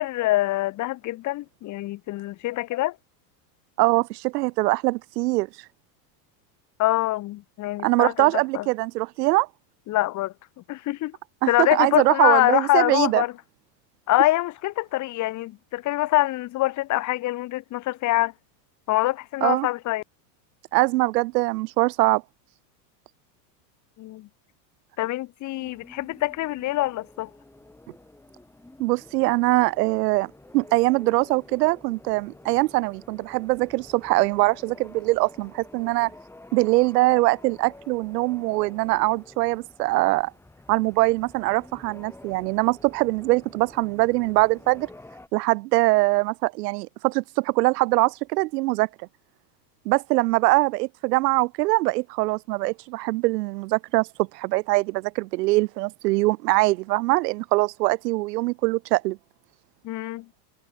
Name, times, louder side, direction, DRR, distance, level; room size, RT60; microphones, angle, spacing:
voice 1, 0.0-2.9 6.8-8.3 8.5-8.7 9.9-10.3 10.7-11.2 11.5-13.3 14.1-18.3 18.9-20.0 24.0-24.3 25.0-27.3 59.8-60.2, left 17 dB, 35° left, 1.6 m, -24 dB
voice 2, 3.8-5.5 7.8-9.5 11.4-13.2 19.4-19.7 20.7-22.2 28.8-36.1 36.5-40.3 40.7-44.9 45.3-48.9 49.9-59.2, right 21 dB, 75° right, 0.7 m, -22 dB
sound 1, 25.6-45.3, left 2 dB, 5° left, 4.7 m, -49 dB
supercardioid pair, 140°, 49 cm